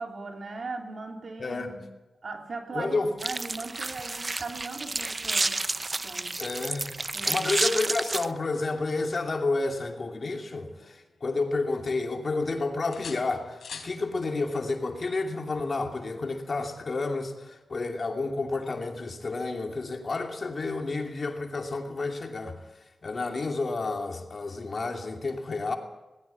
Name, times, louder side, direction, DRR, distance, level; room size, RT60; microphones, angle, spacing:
voice 1, 0.0-1.9 2.2-5.6 6.0-6.4 7.1-7.5, right 3 dB, 60° right, 3.2 m, -38 dB
voice 2, 1.4-1.8 2.7-3.1 6.4-7.0 7.3-22.6 23.0-25.8, left 3 dB, 50° left, 2.8 m, -30 dB
sound 1, 3.2-8.3, right 3 dB, 35° right, 0.6 m, -30 dB
sound 2, 9.8-11.3 11.7-12.5 12.9-14.0 15.8-16.0, left 5 dB, 85° left, 3.4 m, -46 dB
19.5 x 16.0 x 8.7 m
wide cardioid pair, 80°, 0 cm